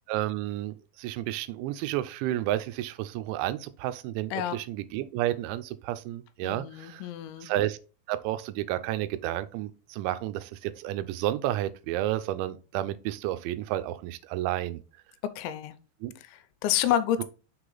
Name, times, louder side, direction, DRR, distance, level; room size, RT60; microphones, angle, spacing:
voice 1, 0.1-7.0 7.4-7.8 8.1-14.8 16.0-16.1, right 14 dB, 90° right, 3.0 m, -31 dB
voice 2, 6.4-7.5 15.4-15.8 16.2-17.2, left 11 dB, 85° left, 3.0 m, -29 dB
6.4 x 4.9 x 3.9 m
omnidirectional pair, 5.2 m